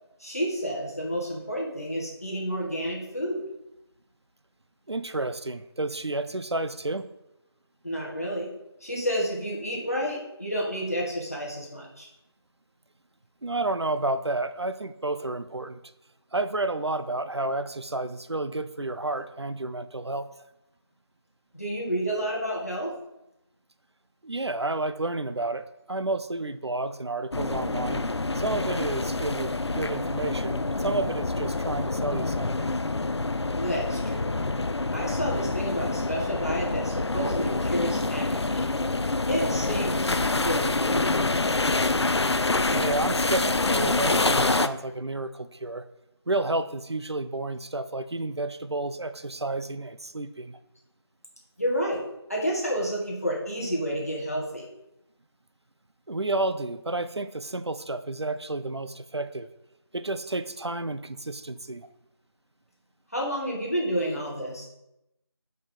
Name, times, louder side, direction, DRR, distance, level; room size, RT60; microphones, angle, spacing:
voice 1, 0.2-3.4 7.8-8.5 8.8-12.1 21.5-22.9 33.6-34.3 34.9-38.6 39.3-41.3 51.6-52.0 52.3-54.6 63.1-64.7, equal, 35° left, -3 dB, 1.7 m, -30 dB
voice 2, 4.9-7.1 13.4-15.8 16.3-20.3 24.2-28.1 28.3-32.7 42.7-45.8 46.3-50.6 56.1-59.5 59.9-61.9, right 2 dB, 75° right, 12 dB, 0.6 m, -31 dB
sound 1, 27.3-44.7, left 2 dB, 75° left, 0.5 m, -26 dB
5.6 x 5.4 x 5.4 m, 0.87 s
figure-of-eight pair, 180°, 14 cm